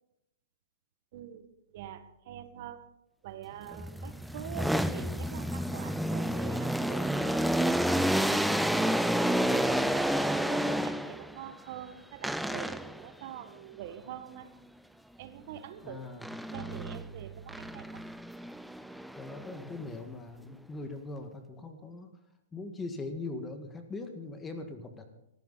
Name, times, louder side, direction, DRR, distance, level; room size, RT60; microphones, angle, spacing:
voice 1, 1.1-1.5 1.7-2.9 3.2-9.0 9.3-14.5 15.2-16.0 16.5-18.0, right 10 dB, 50° right, 10 dB, 1.7 m, -45 dB
sound 1, 3.7-11.3 12.2-13.0 16.2-17.0 17.5-19.9, equal, ahead, 0.6 m, -30 dB
voice 2, 15.8-16.3 17.7-17.8 19.2-22.1 22.5-25.1, left 3 dB, 15° left, 6 dB, 1.7 m, -41 dB
18.0 x 15.0 x 4.1 m, 0.85 s
hypercardioid pair, 140°, 0 cm